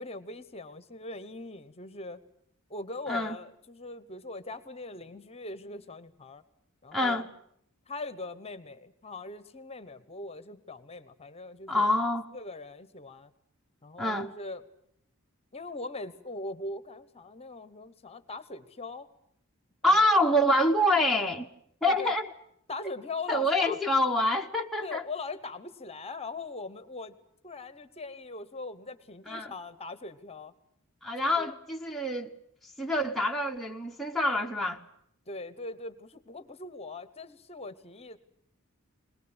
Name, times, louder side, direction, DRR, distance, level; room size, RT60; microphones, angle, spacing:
voice 1, 0.0-2.2 2.7-6.4 6.8-7.3 7.9-11.9 12.3-13.3 13.8-14.6 15.5-19.1 19.8-20.0 21.8-22.1 22.7-23.8 24.8-27.2 27.4-30.5 31.4-31.5 35.3-38.2, left 3 dB, 30° left, 1.1 m, -41 dB
voice 2, 6.9-7.2 11.7-12.3 14.0-14.3 19.8-21.5 21.8-22.3 23.3-25.1 29.3-29.5 31.0-32.3 32.8-34.8, left 1 dB, ahead, 0.9 m, -26 dB
21.5 x 20.0 x 8.9 m
head